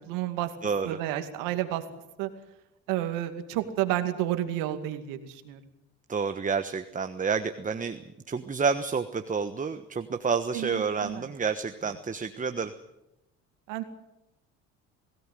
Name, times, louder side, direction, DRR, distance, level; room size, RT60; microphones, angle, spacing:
voice 1, 0.1-0.5 0.8-1.8 2.2-2.3 2.9-5.6 10.5-11.2 13.7-13.9, right 13 dB, 90° right, 8 dB, 2.3 m, -30 dB
voice 2, 0.6-1.0 6.1-8.0 8.3-12.7, right 5 dB, 25° right, 9 dB, 1.3 m, -29 dB
21.0 x 17.0 x 9.3 m, 0.91 s
supercardioid pair, 80°, 32 cm